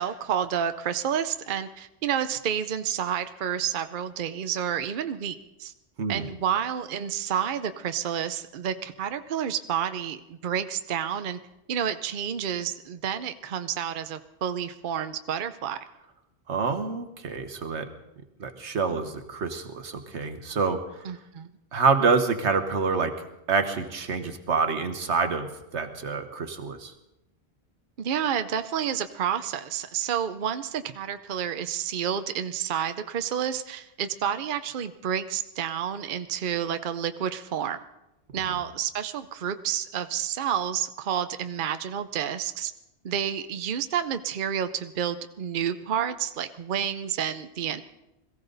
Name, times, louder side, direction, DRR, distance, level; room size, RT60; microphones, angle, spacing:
voice 1, 0.0-5.7 6.1-11.4 11.7-15.8 21.0-21.5 28.0-37.8 38.3-42.7 43.0-47.8, right 9 dB, 55° right, 10 dB, 0.8 m, -30 dB
voice 2, 16.5-17.9 18.4-20.8 21.7-23.1 23.5-26.9 38.3-38.6, right 4 dB, 80° right, 7 dB, 1.5 m, -27 dB
21.5 x 15.5 x 4.0 m, 0.91 s
omnidirectional pair, 1.1 m